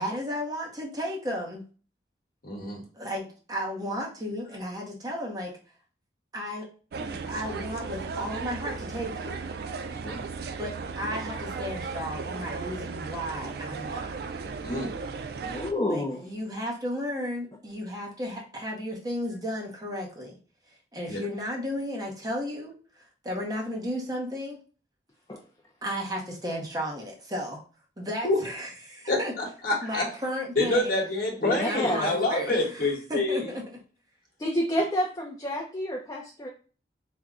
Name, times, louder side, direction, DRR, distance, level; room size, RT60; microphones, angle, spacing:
voice 1, 0.0-1.6 2.9-5.5 6.3-6.7 6.9-9.5 10.6-14.1 15.9-20.4 20.9-24.6 25.8-27.6 28.0-29.3 29.8-31.0 31.6-33.6, equal, 20° right, -2 dB, 0.7 m, -34 dB
voice 2, 2.4-2.8 10.0-10.2 14.6-14.9 21.1-21.2 28.2-28.4 29.1-30.1 30.6-33.5, left 2 dB, 50° left, 0 dB, 1.1 m, -27 dB
sound 1, 6.9-15.7, right 4 dB, 60° right, 0.3 m, -36 dB
voice 3, 15.3-16.3 25.3-25.4 31.4-32.1 34.4-36.5, equal, 20° left, 0 dB, 0.4 m, -29 dB
3.5 x 2.1 x 3.5 m, 0.38 s
head